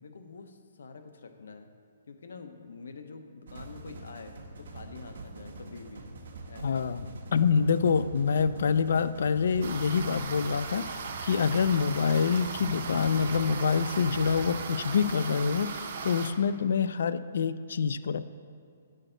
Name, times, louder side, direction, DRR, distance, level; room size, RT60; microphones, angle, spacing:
voice 1, 0.0-1.7 2.1-6.0 6.5-6.8, left 4 dB, 75° left, 6 dB, 0.8 m, -47 dB
sound 1, 3.5-14.7, right 2 dB, 75° right, 1.1 m, -44 dB
voice 2, 6.6-7.1 7.3-18.2, left 6 dB, 55° left, 14 dB, 0.3 m, -26 dB
sound 2, 9.6-16.3, right 5 dB, 45° right, 0.8 m, -38 dB
9.9 x 6.4 x 3.9 m, 2.3 s
hypercardioid pair, 175°, 0 cm